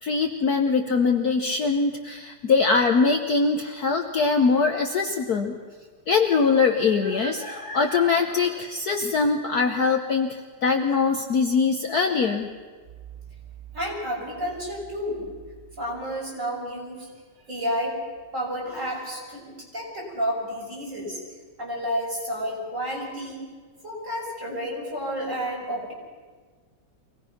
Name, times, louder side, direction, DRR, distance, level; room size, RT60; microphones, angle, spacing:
voice 1, 0.0-5.6 6.1-12.5, left 4 dB, 55° left, 4 dB, 1.3 m, -22 dB
voice 2, 13.7-15.3 15.8-17.1 17.5-18.0 18.3-21.2 21.6-23.4 23.8-25.9, equal, 35° right, -4 dB, 6.3 m, -30 dB
24.5 x 18.0 x 5.9 m, 1.5 s
omnidirectional pair, 2.4 m